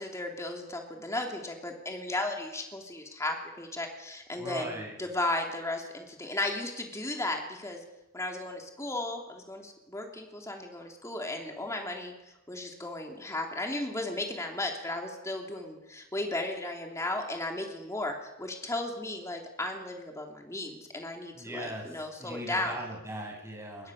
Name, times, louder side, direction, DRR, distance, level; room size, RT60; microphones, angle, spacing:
voice 1, 0.0-7.8 8.1-12.1 12.5-22.8 23.8-23.9, left 2 dB, 15° left, 2 dB, 3.0 m, -35 dB
voice 2, 4.4-4.9 21.3-23.9, right 1 dB, 15° right, 0 dB, 6.2 m, -39 dB
26.5 x 21.5 x 6.5 m, 0.97 s
head